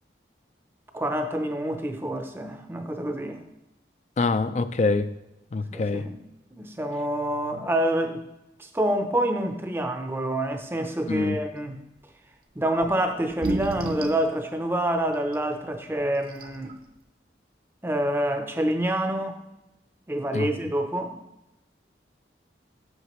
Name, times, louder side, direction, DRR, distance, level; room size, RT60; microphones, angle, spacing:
voice 1, 0.9-3.4 5.7-6.2 6.5-8.2 8.6-11.8 12.6-16.8 17.8-19.4 20.1-21.2, right 1 dB, 15° right, 6 dB, 0.5 m, -27 dB
voice 2, 4.2-5.1 5.5-6.0 11.1-11.4 20.3-20.5, left 3 dB, 40° left, 12 dB, 0.3 m, -25 dB
sound 1, 12.8-12.9 13.3-14.3 15.3-15.4 16.0-16.1 16.3-16.7, right 1 dB, 50° right, 0.7 m, -30 dB
8.1 x 6.4 x 3.0 m, 0.93 s
head